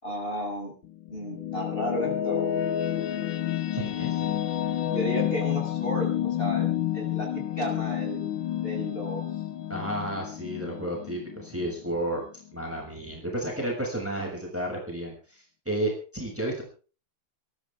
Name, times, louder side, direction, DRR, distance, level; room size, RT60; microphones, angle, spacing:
voice 1, 0.0-0.7 1.1-2.6 4.9-6.1 6.4-8.2 8.6-9.2, equal, 25° left, 0 dB, 7.2 m, -33 dB
sound 1, 0.8-12.2, left 11 dB, 65° left, 1.7 m, -30 dB
voice 2, 3.7-4.4 9.7-12.2 12.5-16.6, right 1 dB, 5° right, 0 dB, 6.5 m, -32 dB
24.0 x 14.5 x 3.6 m, 0.38 s
omnidirectional pair, 2.3 m